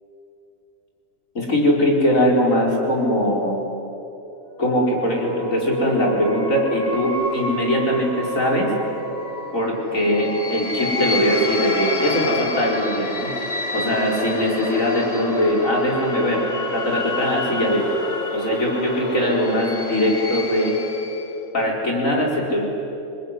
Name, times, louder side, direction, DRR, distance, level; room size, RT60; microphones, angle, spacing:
voice 1, 1.4-3.6 4.6-8.7 9.5-13.3 13.7-16.4 16.7-17.8 18.3-20.7 21.5-22.6, equal, 90° left, -1 dB, 5.3 m, -21 dB
sound 1, 4.6-21.4, left 1 dB, 50° left, 2.3 m, -29 dB
28.0 x 20.5 x 9.9 m, 2.9 s
omnidirectional pair, 1.4 m